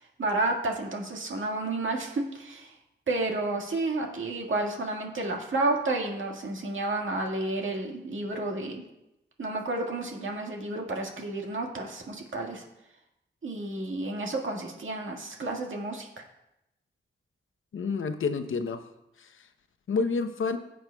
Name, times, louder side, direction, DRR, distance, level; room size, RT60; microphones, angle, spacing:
voice 1, 0.2-2.7 3.1-8.8 9.4-12.6 13.4-16.2, right 2 dB, 85° right, 1 dB, 1.7 m, -31 dB
voice 2, 17.7-18.8 19.2-19.3 19.9-20.6, left 4 dB, 90° left, 8 dB, 0.7 m, -28 dB
16.5 x 7.5 x 2.3 m, 0.89 s
cardioid pair, 60°, 20 cm